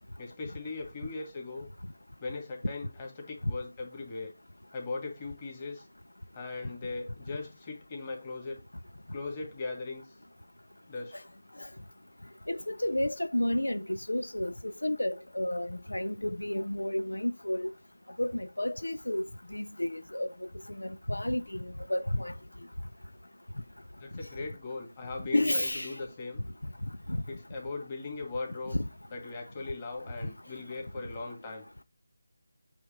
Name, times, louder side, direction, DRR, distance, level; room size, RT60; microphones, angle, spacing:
voice 1, 0.2-1.7 2.2-4.3 4.7-5.8 6.4-8.6 9.1-10.0 10.9-11.1 24.0-26.5 27.3-28.8 29.1-31.6, left 3 dB, 25° left, 2.1 m, -39 dB
voice 2, 12.5-17.7 18.2-19.2 19.5-20.3 20.8-22.3 25.3-26.0 28.7-28.9, left 1 dB, 80° left, 0.5 m, -31 dB
8.5 x 3.3 x 3.8 m
figure-of-eight pair, 160°, 0 cm